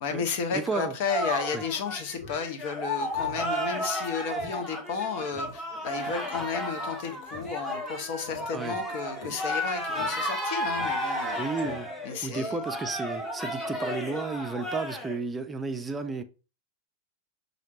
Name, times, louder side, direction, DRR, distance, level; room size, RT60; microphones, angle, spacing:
voice 1, 0.0-11.5 12.0-12.6, left 6 dB, 50° left, 0.8 m, -33 dB
voice 2, 0.5-1.0 1.5-1.6 8.5-8.8 11.4-11.9 12.2-16.2, right 4 dB, 15° right, 0.5 m, -32 dB
sound 1, 1.0-15.2, equal, 15° left, 1.1 m, -33 dB
Speech synthesizer, 2.1-2.4 2.7-2.8 3.1-3.5 3.8-3.9 4.4-4.5 4.8-4.9 5.3-5.5 6.3-6.5 7.2-7.8 8.2-8.8 9.1-9.3 9.9-10.1 10.7-11.2 11.5-12.1, left 1 dB, 70° left, 1.6 m, -44 dB
5.7 x 2.7 x 2.9 m
figure-of-eight pair, 90°, 0 cm